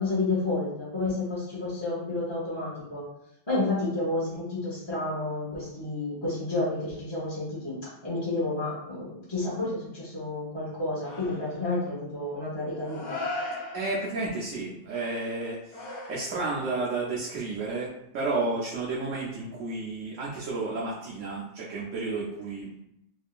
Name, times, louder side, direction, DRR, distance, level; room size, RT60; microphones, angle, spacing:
voice 1, 0.0-3.0 3.5-7.8 8.0-13.2, left 2 dB, 20° left, -9 dB, 1.0 m, -30 dB
sound 1, 11.0-11.7 12.8-14.3 15.7-16.7, left 2 dB, 45° left, 0.7 m, -37 dB
voice 2, 13.7-17.9 18.1-22.8, right 3 dB, 75° right, -6 dB, 1.1 m, -32 dB
3.5 x 3.2 x 2.4 m, 0.81 s
omnidirectional pair, 1.3 m